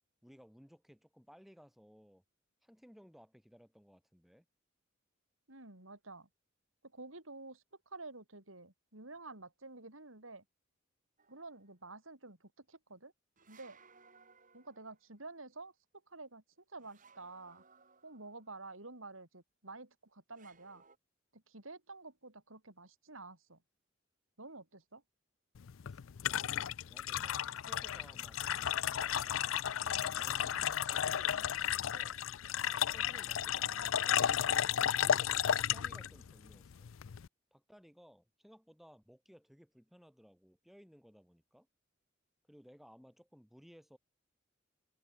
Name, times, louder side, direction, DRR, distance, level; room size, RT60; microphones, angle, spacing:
voice 1, 0.2-2.2 2.6-4.4 25.9-26.0 26.3-32.2 32.7-34.3 35.0-36.9 37.5-41.7 42.5-44.0, equal, ahead, 6.8 m, -60 dB
voice 2, 5.5-6.3 6.9-10.4 11.3-13.1 13.5-13.8 14.5-15.7 16.1-16.4 16.7-17.6 18.0-20.8 21.3-23.6 24.4-25.0, right 3 dB, 85° right, 6.8 m, -50 dB
sound 1, 11.2-11.7 13.4-15.1 16.8-18.5 20.3-21.0, right 5 dB, 40° right, 5.4 m, -63 dB
sound 2, 25.6-37.3, left 10 dB, 80° left, 0.5 m, -33 dB
head